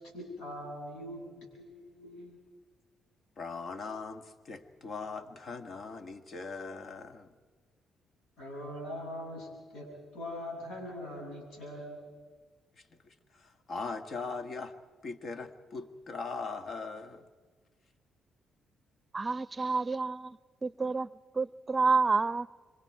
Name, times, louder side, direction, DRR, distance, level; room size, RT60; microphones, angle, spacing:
voice 1, 0.0-2.4 8.4-9.9 10.1-12.0, left 1 dB, 80° left, 0 dB, 7.2 m, -42 dB
voice 2, 3.4-7.3 12.8-14.7 15.0-17.3, left 4 dB, 55° left, 9 dB, 1.6 m, -40 dB
voice 3, 19.1-22.5, right 4 dB, 30° right, 19 dB, 0.6 m, -29 dB
26.0 x 24.0 x 4.8 m, 1.4 s
supercardioid pair, 55°, 0 cm